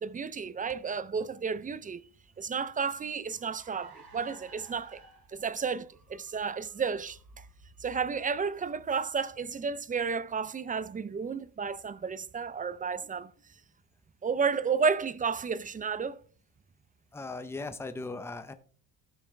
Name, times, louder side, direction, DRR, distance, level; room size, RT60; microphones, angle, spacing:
voice 1, 0.0-2.0 2.4-5.0 5.3-7.5 7.8-13.3 14.2-16.2, right 5 dB, 20° right, 0.4 m, -32 dB
Car, 2.2-10.0, right 3 dB, 50° right, 3.6 m, -57 dB
voice 2, 17.1-18.5, left 3 dB, 5° left, 0.7 m, -38 dB
15.0 x 6.1 x 3.3 m
cardioid pair, 120°, 44 cm